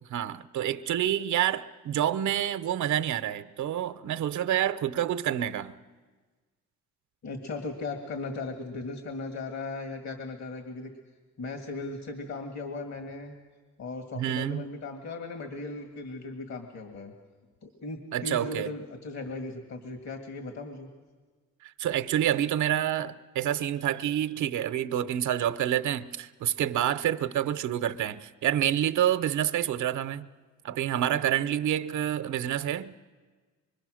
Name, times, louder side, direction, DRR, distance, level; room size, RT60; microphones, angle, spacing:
voice 1, 0.1-5.7 14.2-14.6 18.1-18.7 21.6-30.2 30.6-32.9, right 11 dB, 75° right, 0.8 m, -28 dB
voice 2, 7.2-10.9 11.4-13.4 13.8-17.1 17.6-20.9, left 3 dB, 65° left, 2.1 m, -37 dB
24.5 x 23.5 x 6.3 m
cardioid pair, 90°, 30 cm